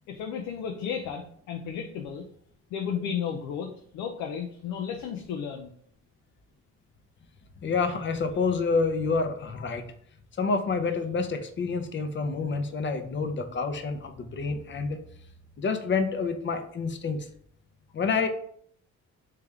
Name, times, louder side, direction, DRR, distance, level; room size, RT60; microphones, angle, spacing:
voice 1, 0.1-2.3 2.7-5.7, left 7 dB, 90° left, 3 dB, 0.5 m, -33 dB
voice 2, 7.6-9.8 10.4-15.0 15.6-17.3 17.9-18.3, left 4 dB, 40° left, 7 dB, 0.7 m, -28 dB
3.4 x 3.3 x 3.5 m, 0.63 s
cardioid pair, 90°, 30 cm